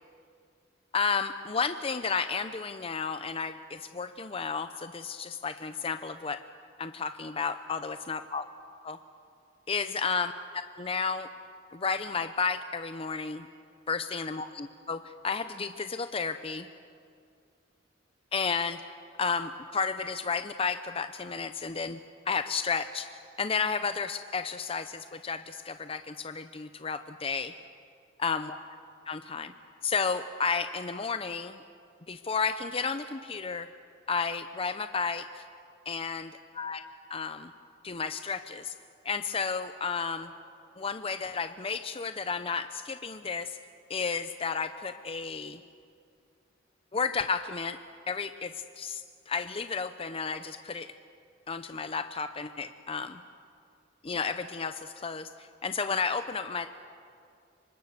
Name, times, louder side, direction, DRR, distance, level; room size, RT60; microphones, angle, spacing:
voice 1, 0.9-6.4 6.8-8.5 8.8-9.0 9.7-11.3 11.7-13.5 13.9-16.7 18.3-18.8 19.2-22.0 22.3-27.5 28.2-28.7 29.1-29.5 29.8-31.6 32.1-33.7 34.1-35.4 35.9-36.8 37.1-37.5 37.8-38.7 39.0-40.3 40.8-43.6 43.9-45.6 46.9-47.8 48.1-50.9 51.5-53.2 54.0-56.7, left 5 dB, 30° left, 10 dB, 0.6 m, -32 dB
26.5 x 24.5 x 6.6 m, 2.3 s
head